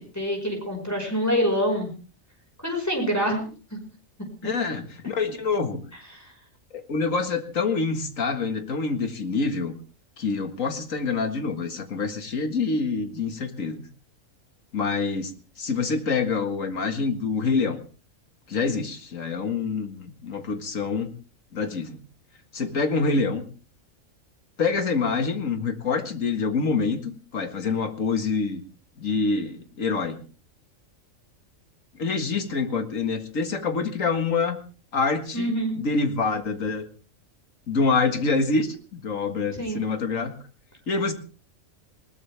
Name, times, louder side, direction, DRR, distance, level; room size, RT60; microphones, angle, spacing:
voice 1, 0.0-1.9 2.6-3.5 3.7-3.8 6.1-6.3 35.3-35.7 39.5-39.8, equal, 10° left, 1 dB, 5.3 m, -26 dB
voice 2, 4.4-5.8 6.7-9.7 10.2-13.8 14.7-17.8 18.5-21.1 21.5-22.0 22.5-23.4 24.6-28.6 29.0-30.2 32.0-34.6 34.9-36.9 37.7-40.4 40.9-41.1, left 4 dB, 75° left, 8 dB, 2.2 m, -26 dB
20.5 x 19.0 x 3.4 m, 0.36 s
omnidirectional pair, 1.4 m